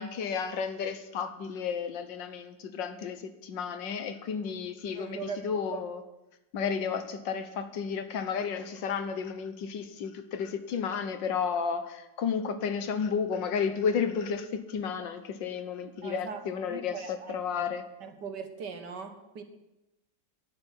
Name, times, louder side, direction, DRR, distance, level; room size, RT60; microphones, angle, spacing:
voice 1, 0.0-6.0 6.5-17.8, left 6 dB, 80° left, 10 dB, 1.8 m, -32 dB
voice 2, 5.0-5.8 15.8-17.7 18.0-19.4, right 5 dB, 65° right, 7 dB, 1.9 m, -40 dB
11.5 x 8.2 x 10.0 m, 0.97 s
omnidirectional pair, 2.0 m